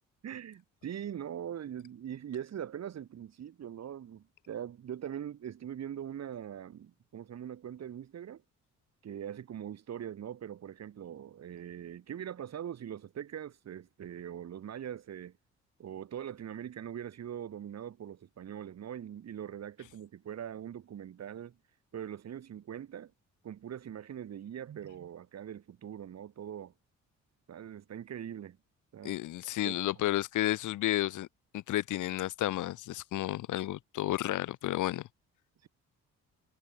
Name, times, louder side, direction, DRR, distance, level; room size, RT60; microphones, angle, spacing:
voice 1, 0.2-8.4 9.0-15.4 15.8-21.6 21.9-23.1 23.4-26.7 27.5-28.6 28.9-29.2 29.6-29.8 35.6-35.7, right 9 dB, 60° right, 3.5 m, -42 dB
voice 2, 29.0-31.3 31.5-35.0, left 14 dB, 80° left, 2.0 m, -32 dB
cardioid pair, 90°, 30 cm